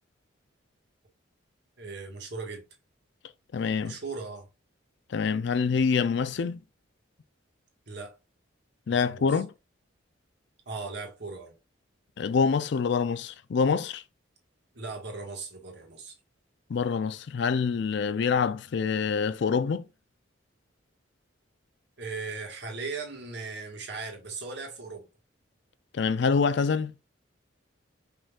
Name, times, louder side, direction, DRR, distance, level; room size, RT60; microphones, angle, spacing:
voice 1, 1.8-2.6 3.8-4.5 7.9-8.1 8.9-9.4 10.6-11.5 14.7-16.1 22.0-25.1, right 4 dB, 60° right, 1.6 m, -38 dB
voice 2, 3.5-4.0 5.1-6.6 8.9-9.5 12.2-14.0 16.7-19.8 25.9-26.9, left 5 dB, 60° left, 0.4 m, -26 dB
5.2 x 3.7 x 2.4 m
head